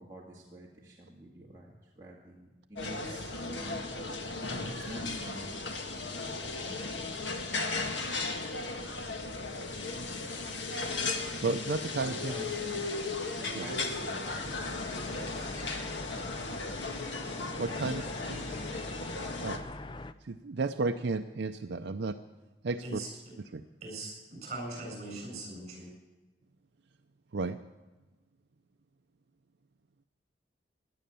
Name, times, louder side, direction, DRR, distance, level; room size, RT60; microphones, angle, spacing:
voice 1, 0.0-4.3 4.6-7.9 8.4-9.0 10.2-10.5 12.0-12.9 13.4-16.2 17.3-18.8 19.1-19.3, right 1 dB, 20° right, -5 dB, 2.0 m, -49 dB
sound 1, 2.8-19.6, left 3 dB, 80° left, 1.6 m, -36 dB
voice 2, 11.4-12.4 13.6-13.7 17.6-18.0 18.3-18.6 19.4-19.6 20.2-22.2 22.6-23.0 23.5-23.6 27.3-27.6, right 3 dB, 70° right, 7 dB, 0.5 m, -33 dB
sound 2, 14.2-20.1, left 2 dB, 25° left, 0.5 m, -43 dB
voice 3, 22.8-23.3 23.8-25.9, right 2 dB, 40° right, 1 dB, 7.4 m, -41 dB
17.0 x 11.5 x 6.9 m, 1.2 s
head